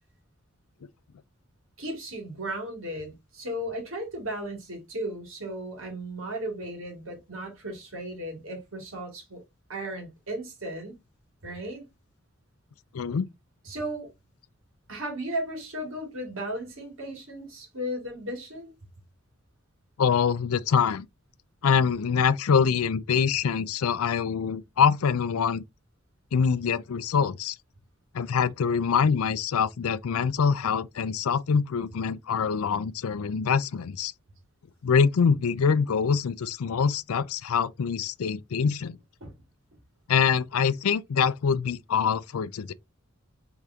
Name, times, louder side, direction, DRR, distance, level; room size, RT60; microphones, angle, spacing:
voice 1, 1.8-9.4 9.7-11.0 11.4-11.8 13.6-14.1 14.9-18.7 39.2-39.4, right 1 dB, 65° right, 2.4 m, -35 dB
voice 2, 12.9-13.3 20.0-21.1 21.6-25.6 26.3-27.6 28.1-34.1 34.8-39.0 40.1-42.7, left 6 dB, 85° left, 0.4 m, -24 dB
4.9 x 3.5 x 2.8 m
head